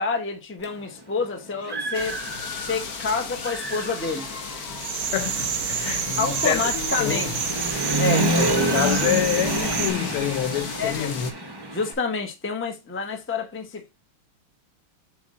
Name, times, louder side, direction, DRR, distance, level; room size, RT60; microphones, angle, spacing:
voice 1, 0.0-2.2 2.6-4.3 6.2-7.5 8.0-8.3 10.8-11.1 11.7-13.9, left 4 dB, 10° left, 0.6 m, -28 dB
Human voice / Motorcycle, 0.6-0.7 1.2-3.0 3.3-11.9, right 1 dB, 30° right, 0.4 m, -28 dB
sound 1, 1.9-11.3, left 5 dB, 50° left, 1.5 m, -36 dB
sound 2, 4.8-9.9, right 8 dB, 75° right, 1.8 m, -29 dB
voice 2, 5.1-7.3 8.4-11.3, left 11 dB, 90° left, 1.6 m, -27 dB
8.1 x 3.3 x 3.7 m
omnidirectional pair, 2.3 m